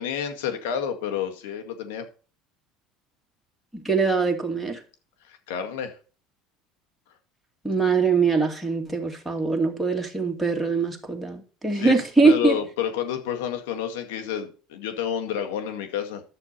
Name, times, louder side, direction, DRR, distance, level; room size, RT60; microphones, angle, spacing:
voice 1, 0.0-2.1 5.3-6.0 11.7-12.0 12.2-16.2, left 9 dB, 85° left, 2.0 m, -29 dB
voice 2, 3.7-4.8 7.6-12.5, right 4 dB, 5° right, 2.4 m, -22 dB
11.0 x 6.8 x 4.3 m
supercardioid pair, 100°, 0 cm